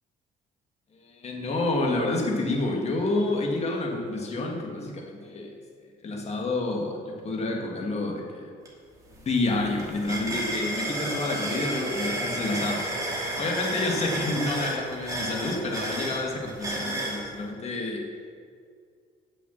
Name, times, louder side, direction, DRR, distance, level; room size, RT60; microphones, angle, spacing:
voice 1, 0.9-5.5 6.0-8.5 9.2-12.8 13.4-18.0, left 2 dB, 40° left, 0 dB, 1.8 m, -29 dB
sound 1, 8.6-8.7 9.1-17.2, right 1 dB, 20° right, 2.4 m, -32 dB
7.9 x 6.2 x 7.2 m, 2.2 s
cardioid pair, 110°, 17 cm